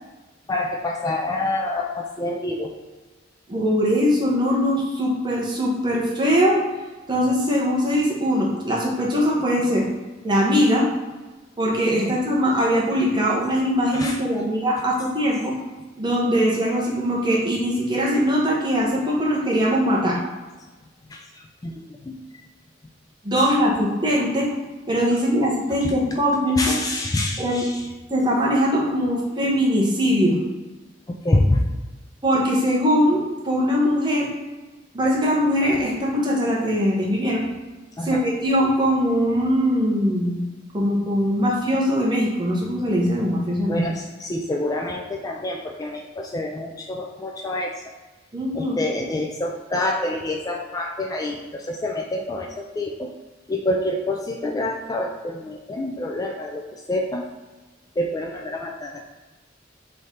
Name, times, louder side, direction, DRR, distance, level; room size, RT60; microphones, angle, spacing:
voice 1, 0.5-2.7 13.9-14.2 21.1-21.7 22.0-22.2 23.4-23.5 25.8-25.9 26.6-27.9 31.1-31.6 38.0-38.2 43.7-47.7 48.5-53.1 53.5-57.3 58.0-59.0, left 1 dB, 20° left, 1 dB, 0.3 m, -27 dB
voice 2, 3.5-6.6 7.1-9.8 10.2-10.9 11.6-15.6 16.0-20.2 23.2-24.5 24.9-26.8 27.4-27.6 28.1-30.4 32.2-34.3 34.9-37.4 38.0-40.4 40.7-43.8 48.3-48.8, equal, 25° right, -4 dB, 1.0 m, -21 dB
3.8 x 3.3 x 4.2 m, 1.2 s
head